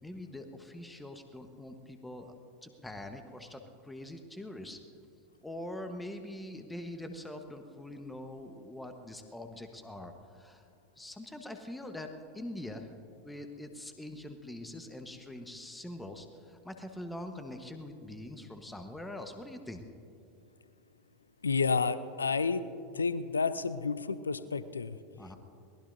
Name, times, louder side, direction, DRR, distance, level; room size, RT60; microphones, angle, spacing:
voice 1, 0.0-2.3 2.6-4.8 5.4-10.7 11.0-12.9 13.2-19.8 25.2-25.4, left 1 dB, 5° left, 6 dB, 1.1 m, -44 dB
voice 2, 21.4-22.6 22.9-25.0, left 5 dB, 80° left, 15 dB, 0.5 m, -30 dB
22.5 x 19.5 x 2.6 m, 2.6 s
figure-of-eight pair, 85°, 0 cm